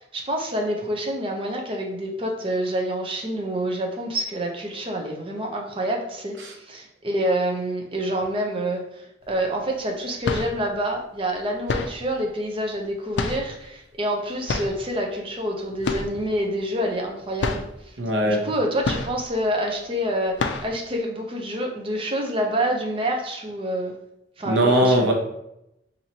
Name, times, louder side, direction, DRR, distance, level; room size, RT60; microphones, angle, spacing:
voice 1, 0.1-17.6 18.2-23.9 24.4-25.1, right 1 dB, 30° right, 1 dB, 0.6 m, -27 dB
sound 1, 9.3-9.4 10.0-10.7 11.7-12.1 13.1-13.7 14.5-14.9 15.8-16.3 16.5-16.6 17.0-17.1 17.4-17.8 18.8-19.4 19.8-19.9 20.4-20.8, left 3 dB, 75° left, 0.4 m, -28 dB
voice 2, 18.0-18.4 24.4-25.1, right 1 dB, 85° right, 1 dB, 0.8 m, -19 dB
4.5 x 2.7 x 2.8 m, 0.82 s
head